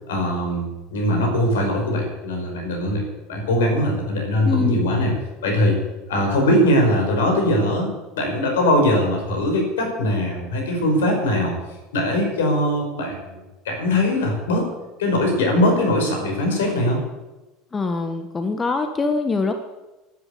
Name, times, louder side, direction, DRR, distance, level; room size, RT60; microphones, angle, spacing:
voice 1, 0.1-3.0 3.3-5.1 5.4-5.8 6.1-11.5 11.9-14.7 15.0-17.0, left 1 dB, 70° left, 2 dB, 5.6 m, -21 dB
voice 2, 4.4-4.8 17.7-19.5, left 3 dB, 25° left, 7 dB, 1.5 m, -23 dB
13.0 x 11.5 x 8.6 m, 1.1 s
figure-of-eight pair, 70°, 0 cm